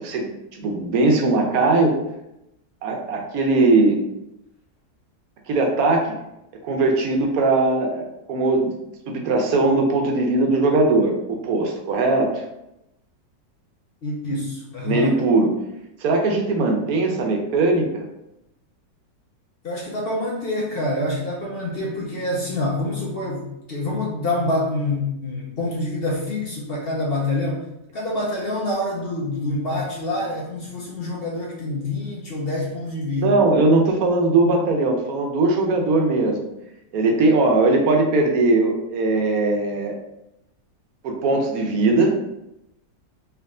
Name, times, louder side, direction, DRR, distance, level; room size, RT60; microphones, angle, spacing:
voice 1, 0.0-2.0 2.8-4.0 5.5-6.1 6.6-8.7 9.1-12.4 14.8-15.5 16.0-18.0 33.2-36.4 36.9-40.0 41.0-42.2, right 3 dB, 65° right, 1 dB, 1.0 m, -20 dB
voice 2, 14.0-15.1 19.6-27.6 27.9-33.3, left 2 dB, 70° left, -3 dB, 0.5 m, -26 dB
3.5 x 3.0 x 3.6 m, 0.87 s
omnidirectional pair, 1.9 m